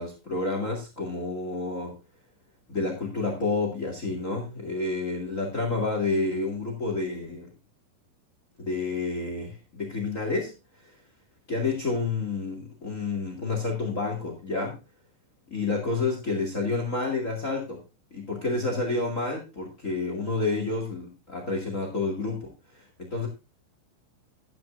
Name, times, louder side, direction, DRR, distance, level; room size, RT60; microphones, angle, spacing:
voice 1, 0.0-1.9 2.7-7.5 8.6-10.5 11.5-14.8 15.5-17.8 18.1-22.5 22.7-23.3, left 3 dB, 85° left, 3 dB, 0.7 m, -29 dB
14.0 x 10.0 x 2.6 m, 0.27 s
omnidirectional pair, 5.6 m